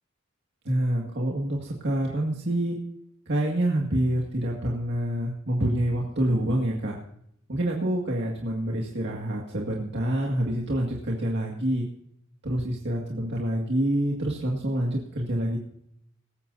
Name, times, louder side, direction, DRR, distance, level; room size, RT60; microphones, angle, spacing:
voice 1, 0.7-2.8 3.3-7.0 7.5-11.9 12.4-15.6, right 1 dB, 55° right, -2 dB, 2.1 m, -27 dB
18.5 x 15.0 x 2.7 m, 0.71 s
head